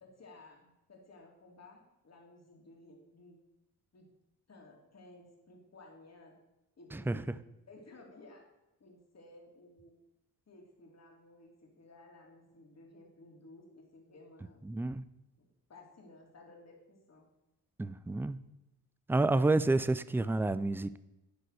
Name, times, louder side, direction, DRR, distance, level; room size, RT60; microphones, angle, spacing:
voice 1, 0.0-3.4 3.9-4.1 4.5-6.3 6.8-7.3 7.7-8.4 8.8-9.9 10.5-14.7 15.4-17.3, left 2 dB, 45° left, 0 dB, 2.5 m, -56 dB
voice 2, 6.9-7.4 14.7-15.0 17.8-18.4 19.1-21.0, right 2 dB, 5° right, 15 dB, 0.3 m, -29 dB
11.0 x 4.1 x 6.4 m, 0.94 s
cardioid pair, 90°, 36 cm